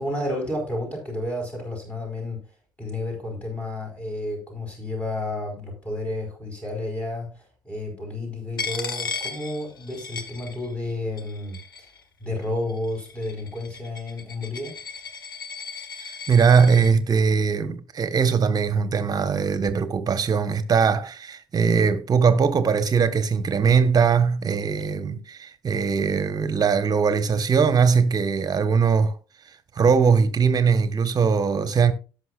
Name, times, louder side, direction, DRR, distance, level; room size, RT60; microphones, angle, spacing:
voice 1, 0.0-2.4 2.8-11.9 12.2-14.8, left 1 dB, 10° left, 4.7 m, -31 dB
Coin (dropping), 8.6-10.9 11.2-12.0 12.7-16.9, left 5 dB, 90° left, 1.0 m, -35 dB
voice 2, 16.0-29.1 29.8-31.9, right 6 dB, 35° right, 1.4 m, -20 dB
17.5 x 6.1 x 2.5 m
figure-of-eight pair, 55°, 11 cm